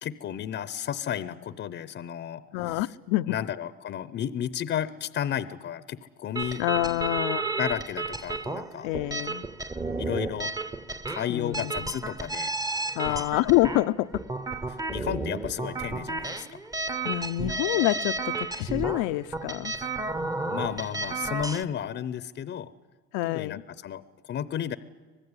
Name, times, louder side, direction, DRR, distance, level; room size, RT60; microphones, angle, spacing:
voice 1, 0.0-2.9 3.3-6.6 7.6-8.9 10.0-10.5 11.1-12.5 13.1-13.3 14.7-16.5 19.7-19.9 20.5-22.7 23.2-24.8, left 9 dB, 35° left, 0.7 m, -33 dB
voice 2, 2.5-3.4 6.6-7.6 8.8-9.5 11.3-11.9 13.0-14.2 17.0-19.7 23.1-23.6, left 18 dB, 80° left, 0.7 m, -27 dB
sound 1, 6.4-21.6, right 3 dB, 10° right, 0.7 m, -32 dB
25.0 x 19.5 x 9.7 m
cardioid pair, 155°, 35 cm